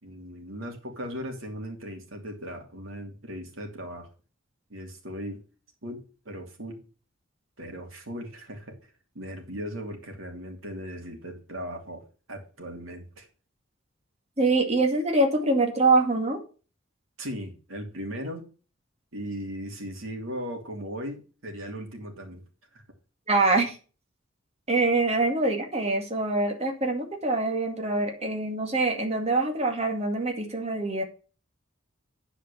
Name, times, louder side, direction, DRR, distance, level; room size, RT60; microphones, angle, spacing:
voice 1, 0.0-4.1 4.7-5.4 5.8-6.8 7.6-8.8 9.1-13.3 17.2-18.5 19.1-22.4 22.7-22.8, equal, 90° right, 3 dB, 2.9 m, -38 dB
voice 2, 14.4-16.4 23.3-23.8 24.7-31.0, right 2 dB, 35° right, 3 dB, 2.2 m, -24 dB
10.5 x 5.0 x 6.8 m, 0.36 s
head